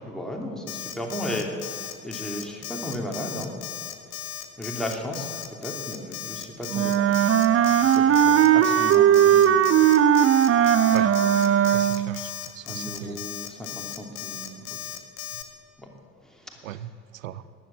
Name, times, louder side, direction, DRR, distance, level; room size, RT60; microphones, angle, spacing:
voice 1, 0.0-3.6 4.6-5.3 5.6-7.2 7.8-9.8 10.9-11.9 12.6-14.6 15.8-15.9 16.2-16.9, left 1 dB, ahead, 0 dB, 2.9 m, -35 dB
Alarm, 0.7-15.4, left 12 dB, 60° left, 1.2 m, -36 dB
Wind instrument woodwind instrument, 6.7-12.2, right 10 dB, 35° right, 0.7 m, -18 dB
voice 2, 11.7-13.2 16.6-17.4, right 11 dB, 75° right, 16 dB, 0.6 m, -37 dB
14.0 x 11.0 x 7.6 m, 2.2 s
figure-of-eight pair, 55°, 40 cm